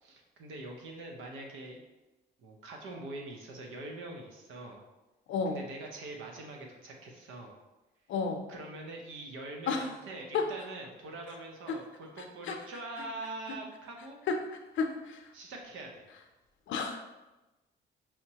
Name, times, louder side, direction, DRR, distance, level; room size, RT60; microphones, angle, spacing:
voice 1, 0.0-1.8 2.4-4.8 5.5-7.5 8.5-14.2 15.3-16.1, right 2 dB, 85° right, 1 dB, 0.8 m, -43 dB
voice 2, 8.1-8.4 9.7-9.8 10.3-10.5 11.7-11.8 12.5-12.6 14.3-14.4 14.8-15.2 16.7-17.0, left 5 dB, 75° left, 4 dB, 0.6 m, -31 dB
5.7 x 2.1 x 2.8 m, 1.1 s
cardioid pair, 90°, 20 cm